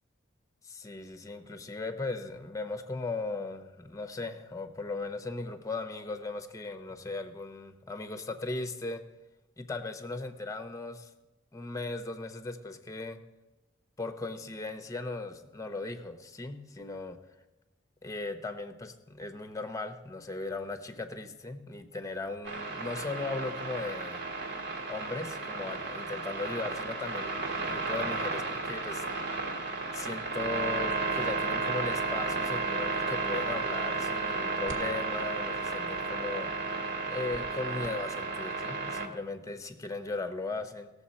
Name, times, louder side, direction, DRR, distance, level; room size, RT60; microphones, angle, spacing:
voice 1, 0.6-9.0 9.6-11.1 11.5-13.2 14.0-17.2 18.0-24.2 24.9-29.0 29.9-36.5 37.1-40.9, left 3 dB, 15° left, 8 dB, 0.8 m, -37 dB
sound 1, 22.4-39.1, right 3 dB, 60° right, 1.5 m, -33 dB
18.0 x 7.0 x 4.2 m, 1.0 s
head